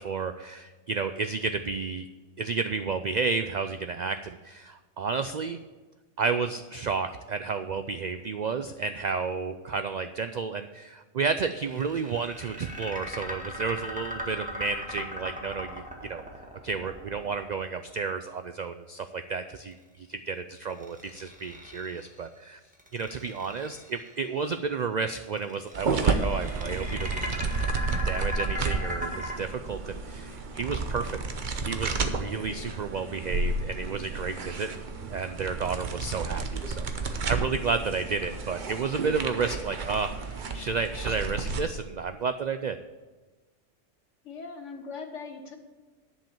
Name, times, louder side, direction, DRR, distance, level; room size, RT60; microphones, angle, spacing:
voice 1, 0.0-2.1 2.4-5.6 6.2-16.2 16.6-22.6 22.9-27.1 28.0-31.2 31.6-42.8, right 5 dB, 75° right, 9 dB, 0.4 m, -31 dB
sound 1, 11.6-17.8 20.6-22.2 22.7-24.1 25.3-29.3, left 1 dB, 5° right, 1.6 m, -38 dB
sound 2, 25.7-41.6, right 4 dB, 45° right, 0.9 m, -31 dB
voice 2, 44.2-45.6, left 4 dB, 70° left, 5 dB, 1.5 m, -40 dB
10.5 x 5.6 x 7.1 m, 1.3 s
omnidirectional pair, 1.3 m